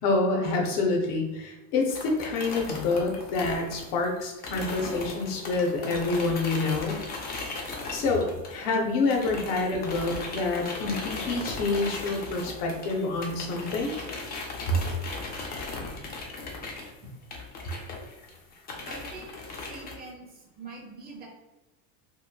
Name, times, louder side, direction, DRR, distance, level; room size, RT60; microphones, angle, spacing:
voice 1, 0.0-7.0 7.9-14.0 14.7-14.8, left 3 dB, 70° left, 2 dB, 0.8 m, -27 dB
sound 1, 1.9-8.8 9.1-19.9, left 3 dB, 25° left, 0.4 m, -37 dB
voice 2, 18.8-21.3, right 3 dB, 25° right, -1 dB, 0.6 m, -44 dB
3.0 x 2.1 x 2.2 m, 1.0 s
cardioid pair, 135°, 38 cm